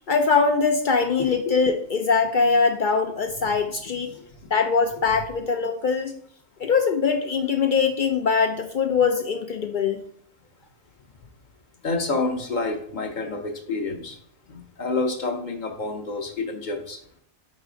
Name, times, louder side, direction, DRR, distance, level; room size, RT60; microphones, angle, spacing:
voice 1, 0.1-4.1 4.5-6.1 6.6-10.0, left 5 dB, 65° left, 5 dB, 0.5 m, -22 dB
voice 2, 11.8-14.2 14.5-17.0, left 3 dB, 40° left, 4 dB, 0.8 m, -28 dB
5.1 x 4.1 x 4.9 m, 0.65 s
omnidirectional pair, 1.4 m